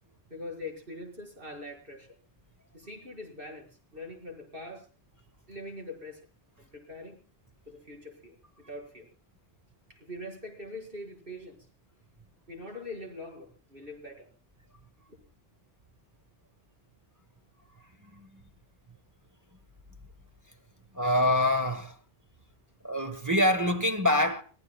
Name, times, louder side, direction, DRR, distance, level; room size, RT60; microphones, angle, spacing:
voice 1, 0.3-2.1 2.7-4.9 5.5-6.2 6.6-7.2 7.7-9.1 9.9-11.7 12.5-14.3 15.1-15.2, left 1 dB, 55° right, 5.9 m, -43 dB
voice 2, 18.0-18.4 20.9-22.0 22.8-24.4, left 1 dB, 15° right, 1.3 m, -25 dB
29.0 x 17.5 x 2.3 m
omnidirectional pair, 1.1 m